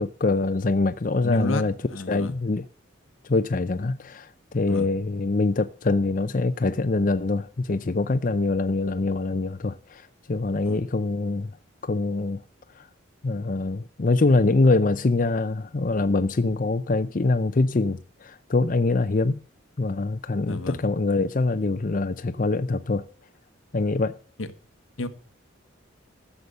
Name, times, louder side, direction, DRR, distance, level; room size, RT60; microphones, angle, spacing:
voice 1, 0.0-1.8 2.1-2.6 3.3-11.5 11.8-12.4 12.8-12.9 13.2-19.4 19.8-23.1 23.7-24.2, left 3 dB, 40° left, 0.5 m, -24 dB
voice 2, 1.2-1.6 1.9-2.3 4.7-4.9 10.6-10.8 20.5-20.8 24.4-24.5 25.0-25.1, left 1 dB, 85° left, 1.2 m, -30 dB
14.0 x 7.0 x 6.6 m
head